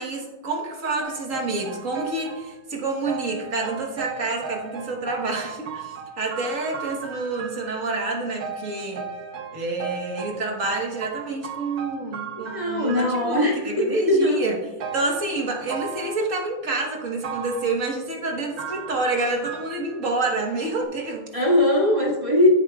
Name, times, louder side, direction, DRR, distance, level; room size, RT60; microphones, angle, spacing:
voice 1, 0.0-9.1 9.5-14.6 14.9-21.3, right 3 dB, 50° right, 0 dB, 1.7 m, -28 dB
sound 1, 1.0-2.6 3.1-8.0 8.4-13.5 14.8-16.2 17.2-17.8 18.6-20.3 20.8-20.9, right 6 dB, 70° right, 1.4 m, -36 dB
voice 2, 12.5-14.5 21.3-22.5, left 1 dB, 20° right, -4 dB, 2.0 m, -20 dB
15.0 x 7.6 x 2.4 m, 1.1 s
omnidirectional pair, 1.7 m